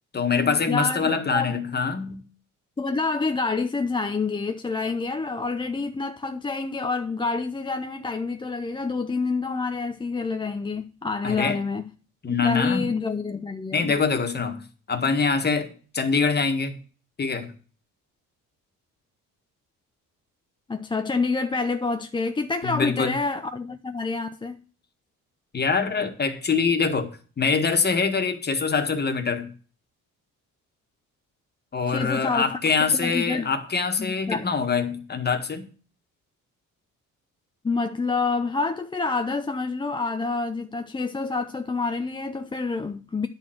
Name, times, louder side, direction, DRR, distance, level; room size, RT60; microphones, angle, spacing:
voice 1, 0.1-2.2 11.2-11.6 12.2-12.9 13.7-14.6 14.9-16.8 17.2-17.5 22.6-23.1 25.5-27.1 27.4-29.5 31.7-35.7, left 5 dB, 30° left, 1.7 m, -24 dB
voice 2, 0.7-1.6 2.8-11.8 12.3-13.9 20.7-24.6 31.9-32.5 32.9-33.5 34.0-34.5 37.6-43.3, left 4 dB, 15° left, 0.5 m, -27 dB
10.5 x 4.5 x 7.7 m
cardioid pair, 125°, 32 cm